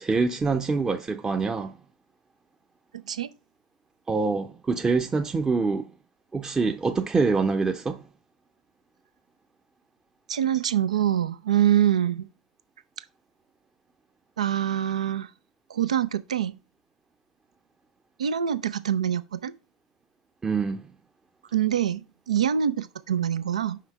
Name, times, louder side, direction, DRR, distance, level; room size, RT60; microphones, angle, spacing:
voice 1, 0.0-1.8 4.1-5.9 6.3-8.0 20.4-20.8, right 4 dB, 20° right, 0.7 m, -25 dB
voice 2, 2.9-3.3 10.3-12.3 14.4-15.3 15.7-16.6 18.2-19.5 21.5-23.8, right 10 dB, 80° right, 0.6 m, -25 dB
5.8 x 5.6 x 4.7 m
figure-of-eight pair, 80°, 4 cm